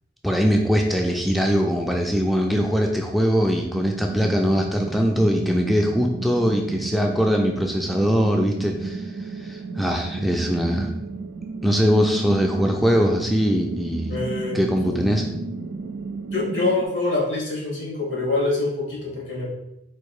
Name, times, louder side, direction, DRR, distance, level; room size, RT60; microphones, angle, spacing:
voice 1, 0.2-9.1 9.4-10.9 11.6-14.1 14.5-15.2, equal, ahead, 1 dB, 0.3 m, -21 dB
sound 1, 3.7-16.8, right 4 dB, 80° right, 0.4 m, -33 dB
voice 2, 14.1-14.6 14.9-15.0 16.3-19.5, left 3 dB, 80° left, -2 dB, 1.7 m, -25 dB
4.3 x 2.6 x 4.7 m, 0.86 s
head